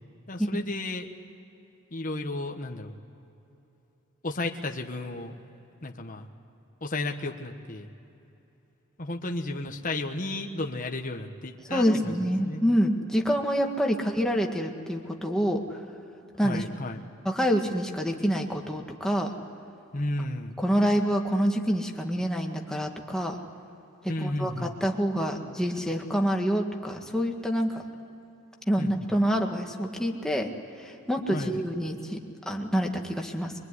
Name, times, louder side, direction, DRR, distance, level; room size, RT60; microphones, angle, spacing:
voice 1, 0.3-1.1 1.9-2.9 4.2-5.4 5.8-6.3 6.8-7.9 9.0-12.1 12.4-12.6 13.9-14.3 16.4-17.0 19.9-20.6 24.0-24.7 28.8-29.1 31.3-31.6, left 2 dB, 40° left, 3 dB, 1.4 m, -33 dB
voice 2, 11.7-15.8 16.4-16.6 17.3-19.3 20.6-23.4 24.0-27.8 28.7-30.5 30.8-33.5, equal, 5° left, 1 dB, 1.9 m, -27 dB
24.0 x 23.0 x 9.8 m, 2.9 s
head